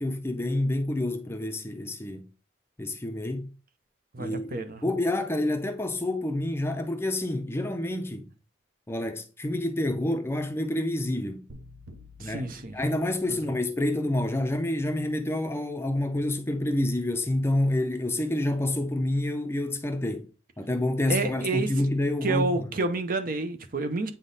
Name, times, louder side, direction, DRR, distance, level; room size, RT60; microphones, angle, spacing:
voice 1, 0.0-2.3 2.8-3.5 4.2-8.3 8.9-11.4 12.2-20.3 20.6-22.7, left 1 dB, 15° left, 0.5 m, -28 dB
voice 2, 4.1-4.8 12.2-12.7 13.3-13.6 21.1-21.9 22.2-24.1, right 3 dB, 45° right, 0.7 m, -29 dB
sound 1, 11.5-13.7, left 1 dB, 80° right, 0.9 m, -50 dB
8.3 x 3.8 x 3.9 m
head